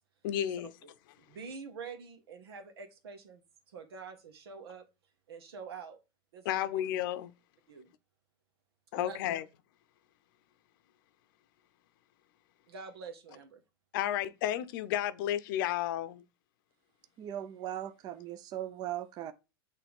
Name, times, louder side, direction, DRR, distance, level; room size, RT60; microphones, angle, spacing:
voice 1, 0.2-0.7 6.4-7.3 8.9-9.4 13.9-16.2, left 12 dB, 60° left, 0.7 m, -32 dB
voice 2, 1.2-4.8 5.3-6.0 6.3-6.8 7.7-7.9 8.9-9.3 12.7-13.6, right 5 dB, 90° right, 1.7 m, -46 dB
voice 3, 17.2-19.3, right 11 dB, 30° right, 0.6 m, -39 dB
8.5 x 3.3 x 3.6 m
supercardioid pair, 145°, 13 cm